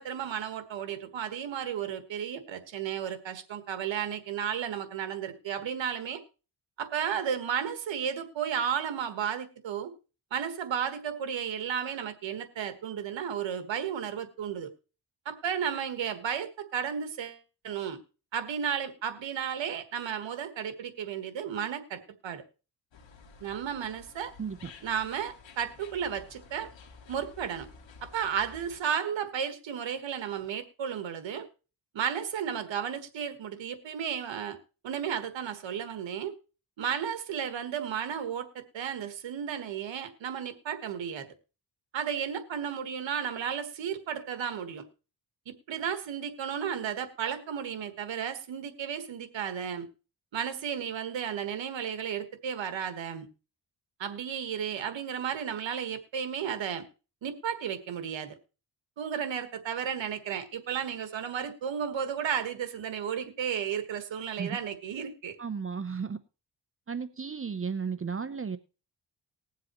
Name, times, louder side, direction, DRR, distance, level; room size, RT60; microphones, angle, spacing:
voice 1, 0.0-6.2 6.8-9.9 10.3-14.7 15.2-18.0 18.3-22.4 23.4-24.3 24.8-26.7 27.1-27.7 28.0-31.5 31.9-34.6 34.8-36.3 36.8-41.3 41.9-44.8 45.5-49.9 50.3-53.3 54.0-56.8 57.2-58.3 59.0-65.3, right 8 dB, 85° right, 10 dB, 1.5 m, -33 dB
sound 1, 22.9-28.8, left 5 dB, 90° left, 1.8 m, -52 dB
voice 2, 24.4-24.7 64.4-64.6 65.4-66.2 66.9-68.6, right 6 dB, 30° right, 13 dB, 0.7 m, -34 dB
20.0 x 7.5 x 3.0 m, 0.33 s
cardioid pair, 95°, 44 cm